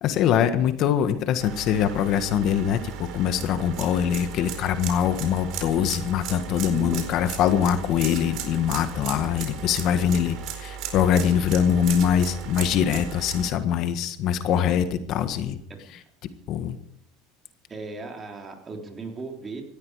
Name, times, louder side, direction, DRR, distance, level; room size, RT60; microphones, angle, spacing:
voice 1, 0.0-15.6 16.5-16.8, left 9 dB, 55° left, 9 dB, 1.6 m, -23 dB
sound 1, 1.4-13.5, right 8 dB, 55° right, 4.4 m, -36 dB
voice 2, 6.7-7.2 11.0-11.3 15.7-15.9 17.7-19.6, right 4 dB, 25° right, 2 dB, 3.6 m, -37 dB
18.0 x 14.0 x 4.9 m, 0.68 s
supercardioid pair, 120°, 0 cm